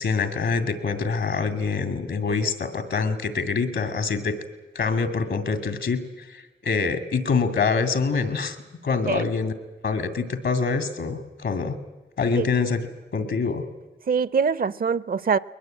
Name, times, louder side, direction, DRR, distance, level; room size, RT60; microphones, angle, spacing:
voice 1, 0.0-4.4 4.7-8.6 8.8-9.5 9.8-11.8 12.2-12.9 13.1-13.7, left 4 dB, 75° left, 2.4 m, -25 dB
voice 2, 14.1-15.4, right 6 dB, 50° right, 0.7 m, -24 dB
21.5 x 20.0 x 8.9 m
cardioid pair, 65°, 19 cm